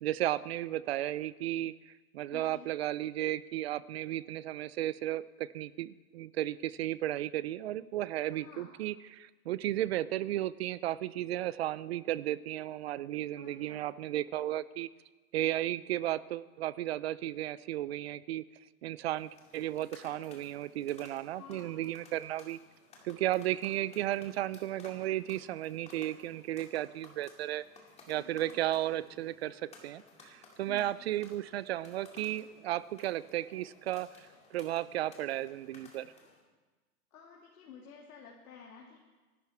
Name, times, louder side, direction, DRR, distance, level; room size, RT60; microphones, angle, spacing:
voice 1, 0.0-14.9 15.3-18.4 18.8-22.6 23.0-27.6 28.1-36.1, right 14 dB, 45° right, 18 dB, 0.5 m, -34 dB
voice 2, 2.3-2.7 8.3-8.7 13.4-13.8 21.3-21.7 28.2-28.6 30.7-30.9 37.1-39.0, left 6 dB, 65° left, -2 dB, 2.8 m, -52 dB
sound 1, 19.1-36.5, left 3 dB, 15° left, 2.1 m, -58 dB
25.5 x 12.0 x 4.4 m, 1.3 s
hypercardioid pair, 145°, 46 cm